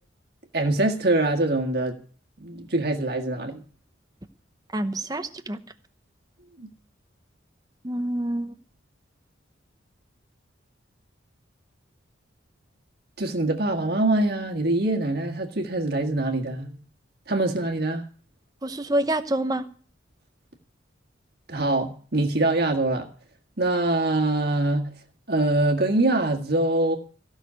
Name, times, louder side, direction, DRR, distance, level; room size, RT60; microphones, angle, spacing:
voice 1, 0.5-1.9 2.4-3.6 6.6-6.7 13.2-16.8 17.3-18.0 21.5-23.1 23.6-24.9 25.3-27.0, right 2 dB, 55° right, 2 dB, 1.7 m, -24 dB
voice 2, 4.7-5.6 7.8-8.5 18.6-19.6, right 1 dB, 20° right, 9 dB, 0.8 m, -27 dB
15.5 x 6.3 x 9.5 m, 0.42 s
head